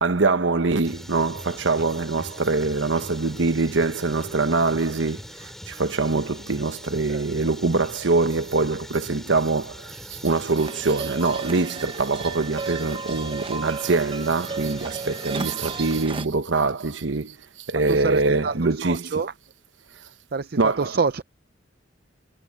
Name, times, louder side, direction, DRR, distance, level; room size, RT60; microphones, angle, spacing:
voice 1, 0.0-19.1 20.6-20.9, right 3 dB, 80° right, 1.0 m, -24 dB
sound 1, 0.8-16.1, equal, ahead, 4.9 m, -42 dB
voice 2, 7.1-7.5 17.7-19.3 20.3-21.2, right 5 dB, 55° right, 0.5 m, -27 dB
sound 2, 10.6-16.3, right 4 dB, 30° right, 0.9 m, -34 dB
head